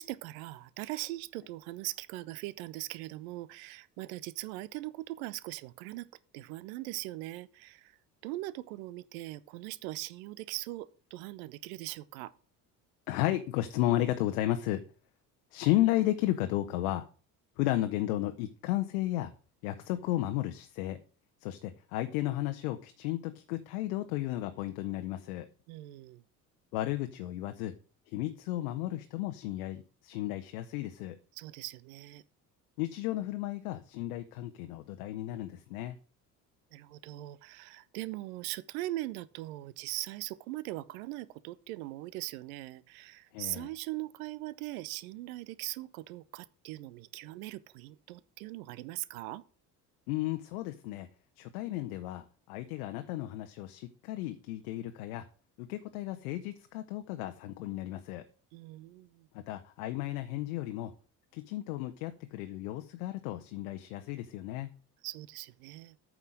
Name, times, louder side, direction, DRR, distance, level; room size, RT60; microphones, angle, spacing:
voice 1, 0.0-6.1 6.3-7.9 8.2-12.3 25.7-26.2 31.4-32.2 36.7-49.4 58.5-59.3 65.0-66.0, right 18 dB, 60° right, 0.8 m, -40 dB
voice 2, 13.1-14.8 15.5-17.0 17.6-19.3 19.6-21.0 21.4-25.5 26.7-27.8 28.1-31.2 32.8-36.0 43.3-43.7 50.1-51.1 51.4-55.2 55.6-58.2 59.3-60.9 61.3-64.7, left 15 dB, 60° left, 1.0 m, -33 dB
9.1 x 6.1 x 7.4 m
figure-of-eight pair, 55°, 48 cm